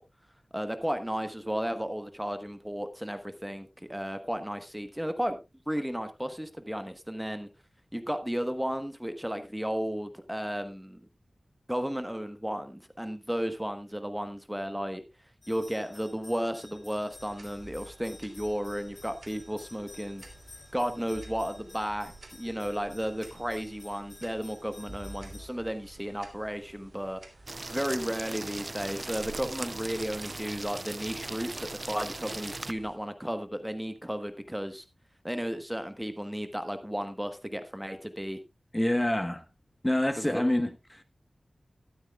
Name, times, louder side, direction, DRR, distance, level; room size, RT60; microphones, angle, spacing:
voice 1, 0.5-5.4 5.7-7.5 7.9-11.0 11.7-15.0 15.5-20.2 20.7-27.2 27.7-34.8 35.2-38.4 40.2-40.4, equal, 5° right, 1.1 m, -34 dB
sound 1, 15.4-25.5, left 2 dB, 60° left, 3.0 m, -53 dB
sound 2, 17.1-33.0, right 2 dB, 60° right, 2.9 m, -51 dB
sound 3, 27.5-32.7, right 2 dB, 40° right, 0.6 m, -39 dB
voice 2, 38.7-39.4 39.8-41.1, left 1 dB, 15° left, 1.1 m, -27 dB
12.5 x 12.5 x 2.3 m
wide cardioid pair, 80°, 0 cm